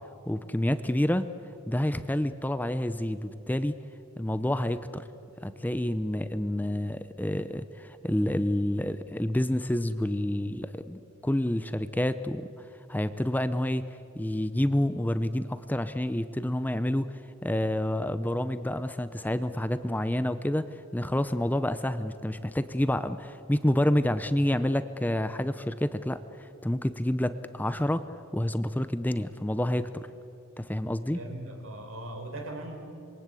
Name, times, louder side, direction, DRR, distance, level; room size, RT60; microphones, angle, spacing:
voice 1, 0.3-1.2 1.7-3.7 4.2-5.0 5.4-12.4 12.9-13.9 14.1-17.1 17.4-20.7 20.9-28.0 28.3-30.1 30.6-31.2, left 1 dB, 10° left, 12 dB, 0.6 m, -28 dB
voice 2, 31.1-32.7, right 1 dB, 85° right, 4 dB, 4.3 m, -39 dB
26.0 x 22.5 x 8.3 m, 2.8 s
head